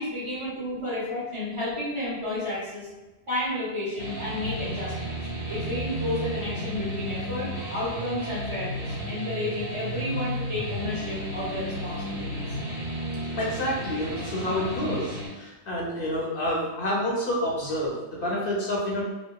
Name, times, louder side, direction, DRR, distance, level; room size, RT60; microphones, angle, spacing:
voice 1, 0.0-2.9 3.3-5.2 5.5-12.5, left 1 dB, 30° right, -10 dB, 0.9 m, -32 dB
sound 1, 4.0-15.3, equal, 70° right, 1.3 m, -33 dB
voice 2, 13.4-19.0, left 1 dB, 60° left, -5 dB, 0.7 m, -28 dB
2.8 x 2.0 x 2.2 m, 1.1 s
omnidirectional pair, 1.1 m